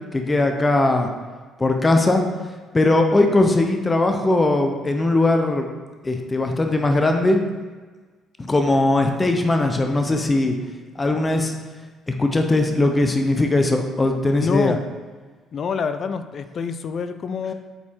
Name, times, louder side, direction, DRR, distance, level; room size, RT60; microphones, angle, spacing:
voice 1, 0.1-1.1 1.6-2.2 2.7-5.7 6.0-7.4 8.4-10.5 11.0-11.5 12.1-14.8, left 2 dB, 20° left, 4 dB, 0.8 m, -19 dB
voice 2, 14.3-14.8 15.5-17.5, left 6 dB, 50° left, 10 dB, 0.5 m, -26 dB
6.8 x 4.1 x 4.5 m, 1.4 s
supercardioid pair, 80°, 0 cm